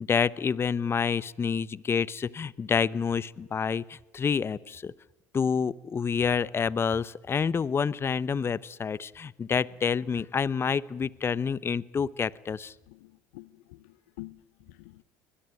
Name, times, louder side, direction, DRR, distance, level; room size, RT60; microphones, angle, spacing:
voice 1, 0.0-4.9 5.3-12.7, left 6 dB, 30° left, 0.9 m, -28 dB
voice 2, 12.9-15.0, left 21 dB, 75° left, 0.8 m, -48 dB
22.0 x 21.5 x 9.1 m
hypercardioid pair, 75°, 8 cm